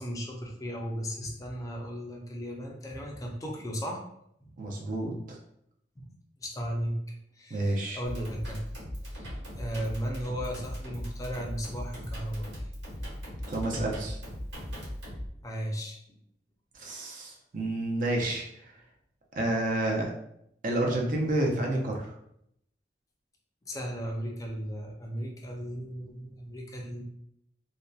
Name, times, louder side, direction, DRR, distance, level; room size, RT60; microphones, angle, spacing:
voice 1, 0.0-4.0 4.4-4.5 6.0-6.1 6.4-8.6 9.1-9.3 9.6-12.5 15.4-16.2 23.7-27.0, equal, 20° left, 0 dB, 0.4 m, -36 dB
voice 2, 4.6-5.4 7.5-8.0 13.5-14.2 16.7-18.7 19.4-20.1 20.6-22.2, right 1 dB, 45° right, 0 dB, 0.5 m, -29 dB
sound 1, 8.1-15.3, equal, 90° right, 1.2 m, -39 dB
2.6 x 2.1 x 2.3 m, 0.74 s
head